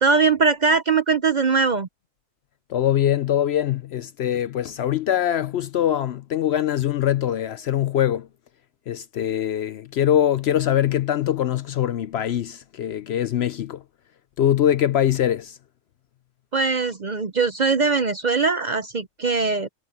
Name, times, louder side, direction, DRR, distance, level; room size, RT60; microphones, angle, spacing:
voice 1, 0.0-1.9 16.5-19.7, right 4 dB, 45° right, 0.6 m, -21 dB
voice 2, 2.7-8.3 8.9-13.8 14.4-15.6, left 11 dB, 65° left, 0.7 m, -23 dB
omnidirectional pair, 1.4 m